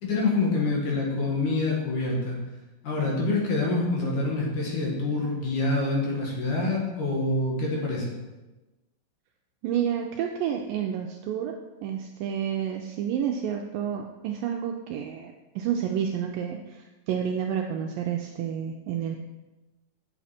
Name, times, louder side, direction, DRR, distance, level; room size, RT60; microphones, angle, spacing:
voice 1, 0.0-2.4 2.8-8.1, left 2 dB, 60° left, -2 dB, 3.0 m, -26 dB
voice 2, 9.6-11.5 11.8-19.2, right 8 dB, 80° right, 2 dB, 2.0 m, -30 dB
8.6 x 7.1 x 4.2 m, 1.1 s
omnidirectional pair, 4.4 m